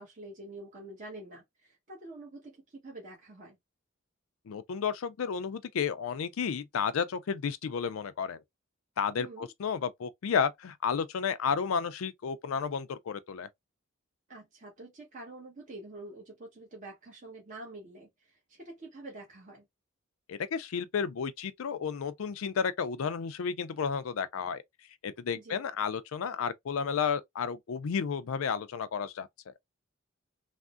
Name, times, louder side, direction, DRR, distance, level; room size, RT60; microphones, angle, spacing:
voice 1, 0.0-3.6 9.2-9.5 14.3-19.7 25.3-25.6, right 2 dB, 40° right, 1.0 m, -47 dB
voice 2, 4.5-8.4 9.0-13.5 20.3-24.6 25.0-29.5, left 6 dB, 85° left, 0.4 m, -32 dB
3.4 x 2.0 x 2.4 m
head